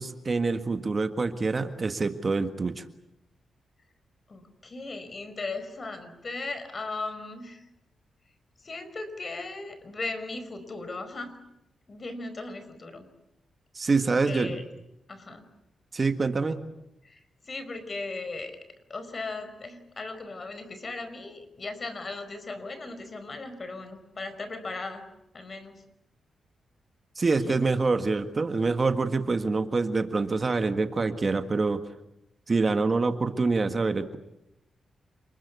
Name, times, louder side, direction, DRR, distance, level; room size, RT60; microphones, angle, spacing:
voice 1, 0.0-2.8 13.7-14.6 15.9-16.6 27.1-31.8 32.5-34.2, right 3 dB, 35° right, 8 dB, 1.7 m, -26 dB
voice 2, 4.3-7.6 8.6-11.4 11.9-13.0 14.1-14.6 15.1-15.4 17.0-18.6 18.9-25.1 25.3-25.8 27.4-27.7, left 3 dB, 40° left, 10 dB, 4.9 m, -37 dB
28.5 x 21.0 x 8.3 m, 0.87 s
cardioid pair, 85°, 0 cm